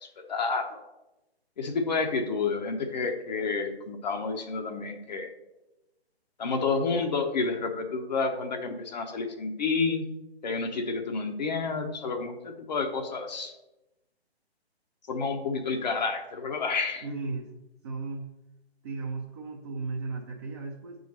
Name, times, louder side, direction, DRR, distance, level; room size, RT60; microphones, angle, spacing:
voice 1, 0.0-0.8 1.6-5.3 6.4-10.1 10.4-13.5 15.1-17.0, left 4 dB, 45° left, 3 dB, 0.9 m, -30 dB
voice 2, 17.0-17.5 17.8-18.3 18.8-21.0, right 3 dB, 25° right, 0 dB, 0.7 m, -35 dB
6.7 x 3.9 x 6.4 m, 0.96 s
figure-of-eight pair, 135°, 32 cm